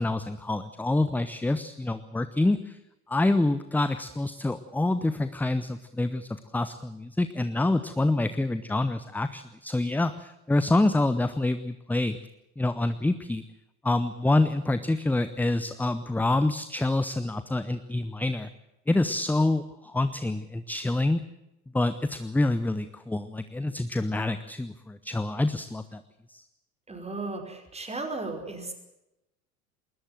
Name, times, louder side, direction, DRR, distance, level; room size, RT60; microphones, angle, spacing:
voice 1, 0.0-2.8 3.1-12.2 12.6-13.4 13.8-18.5 18.9-21.2 21.7-26.0 26.3-26.4, left 2 dB, 5° left, 12 dB, 0.8 m, -27 dB
voice 2, 26.9-28.7, right 3 dB, 15° right, 5 dB, 5.2 m, -35 dB
20.5 x 20.0 x 7.7 m, 0.89 s
figure-of-eight pair, 70°, 43 cm